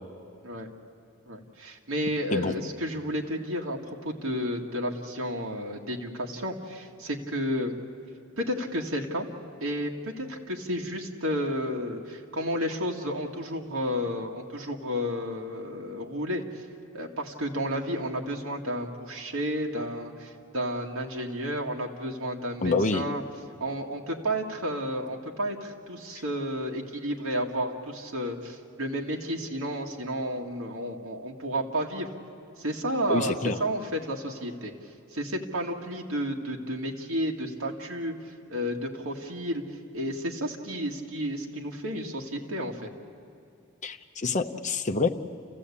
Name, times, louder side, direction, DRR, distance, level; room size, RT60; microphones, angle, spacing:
voice 1, 1.3-7.7 8.4-9.3 9.6-16.4 16.9-23.2 23.6-32.1 32.6-34.7 35.1-38.1 38.5-39.6 39.9-42.9, equal, 75° right, 0 dB, 1.9 m, -32 dB
voice 2, 22.6-23.0 33.1-33.6 43.8-45.1, left 3 dB, 35° left, 4 dB, 0.8 m, -26 dB
29.0 x 15.0 x 8.5 m, 2.5 s
head